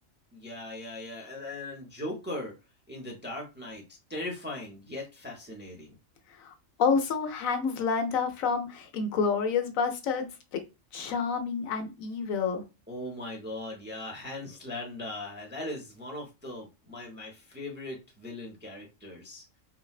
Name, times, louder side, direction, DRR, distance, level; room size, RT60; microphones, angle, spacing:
voice 1, 0.3-2.5 2.9-5.9 12.9-19.5, left 1 dB, 10° right, 0 dB, 0.5 m, -39 dB
voice 2, 6.8-10.6 10.9-12.6, left 5 dB, 85° left, 6 dB, 1.1 m, -28 dB
3.8 x 2.1 x 2.3 m, 0.26 s
omnidirectional pair, 1.4 m